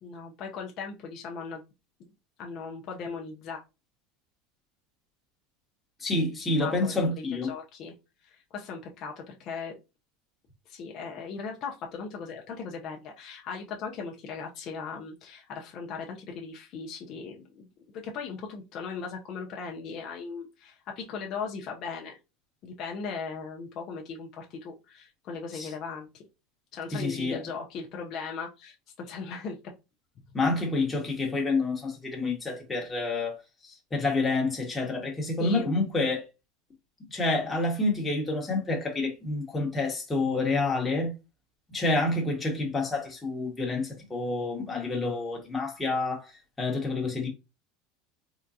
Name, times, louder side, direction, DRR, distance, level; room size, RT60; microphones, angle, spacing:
voice 1, 0.0-1.6 2.4-3.6 6.6-7.9 8.2-9.8 10.7-17.7 17.9-22.2 22.6-26.2 26.7-29.6 35.4-35.7, left 5 dB, 50° left, 0.6 m, -38 dB
voice 2, 6.0-7.5 25.5-25.7 26.9-27.4 30.3-33.4 33.6-36.2 37.1-41.1 41.7-46.3 46.6-47.3, left 3 dB, 15° left, 1.1 m, -28 dB
3.7 x 2.2 x 2.7 m
supercardioid pair, 120°, 0 cm